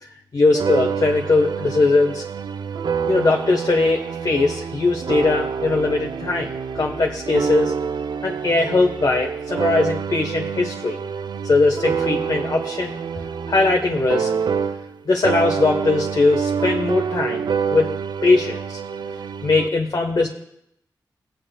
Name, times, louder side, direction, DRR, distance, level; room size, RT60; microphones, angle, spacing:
voice 1, 0.3-2.2 3.1-7.7 8.2-11.0 11.4-13.0 13.5-14.3 15.1-17.4 17.7-17.9 18.2-18.8 19.4-20.3, left 3 dB, 55° left, 0 dB, 1.0 m, -20 dB
sound 1, 0.5-15.0 15.2-19.7, right 6 dB, 70° right, 0.4 m, -27 dB
20.5 x 7.9 x 2.2 m, 0.77 s
cardioid pair, 50°, 8 cm